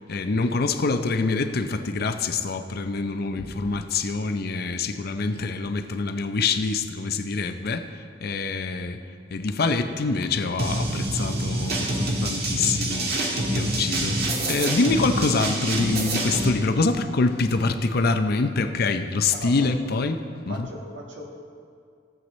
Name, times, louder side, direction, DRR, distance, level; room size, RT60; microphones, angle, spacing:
voice 1, 0.1-7.9 8.2-9.0 9.3-20.2 20.5-20.7, left 3 dB, 55° left, 8 dB, 0.6 m, -25 dB
sound 1, 10.6-16.5, right 1 dB, 60° right, 1.5 m, -26 dB
voice 2, 20.5-21.2, equal, 85° right, -1 dB, 1.7 m, -38 dB
16.5 x 7.7 x 3.2 m, 2.3 s
head